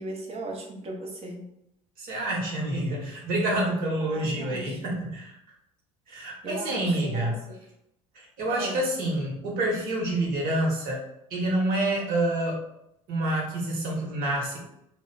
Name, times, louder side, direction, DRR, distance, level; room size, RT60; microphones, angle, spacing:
voice 1, 0.0-1.4 4.0-5.0 6.4-7.4 8.5-8.9, right 1 dB, 35° right, 1 dB, 1.0 m, -37 dB
voice 2, 2.0-5.4 6.1-7.4 8.1-11.0 11.3-12.6 13.1-14.6, right 1 dB, 60° right, -1 dB, 1.3 m, -28 dB
2.9 x 2.2 x 3.8 m, 0.81 s
hypercardioid pair, 75°, 17 cm